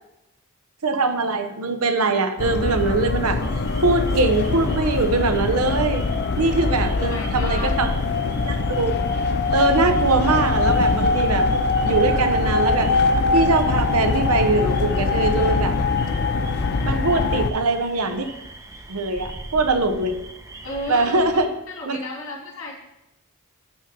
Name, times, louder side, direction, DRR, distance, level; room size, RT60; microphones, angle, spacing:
voice 1, 0.8-3.4 3.8-6.0 6.4-7.9 8.5-8.9 9.5-11.5 11.8-12.9 13.3-15.7 16.8-18.3 18.9-20.1 20.9-21.5 21.9-22.0, right 3 dB, 90° right, 7 dB, 0.9 m, -22 dB
sound 1, 2.4-17.5, left 3 dB, 50° left, 0.5 m, -22 dB
sound 2, 3.4-21.5, right 1 dB, 15° right, 0.6 m, -39 dB
voice 2, 6.9-7.7 20.6-21.2 21.7-22.7, left 1 dB, 75° left, -3 dB, 2.6 m, -33 dB
9.0 x 3.8 x 5.6 m, 0.94 s
head